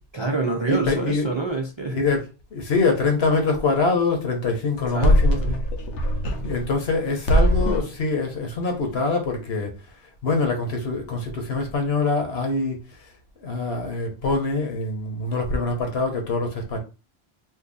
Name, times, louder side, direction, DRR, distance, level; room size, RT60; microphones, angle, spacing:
voice 1, 0.0-2.0 4.9-5.6, right 3 dB, 35° right, 0.5 m, -27 dB
voice 2, 0.7-1.3 1.9-5.5 6.4-9.7 10.2-13.0 13.4-16.8, left 3 dB, 65° left, 1.2 m, -24 dB
sound 1, 4.7-7.0 7.3-8.0, equal, 80° left, 1.0 m, -21 dB
2.8 x 2.6 x 3.8 m
omnidirectional pair, 1.2 m